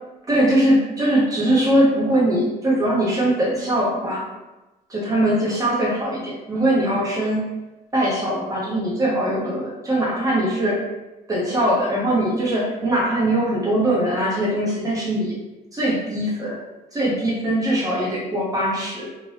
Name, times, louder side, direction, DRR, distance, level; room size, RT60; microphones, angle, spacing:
voice 1, 0.3-4.2 4.9-7.4 7.9-10.8 11.3-15.3 15.7-16.6 16.9-19.1, right 1 dB, 20° right, -6 dB, 1.2 m, -21 dB
2.8 x 2.6 x 3.4 m, 1.1 s
cardioid pair, 110°, 17 cm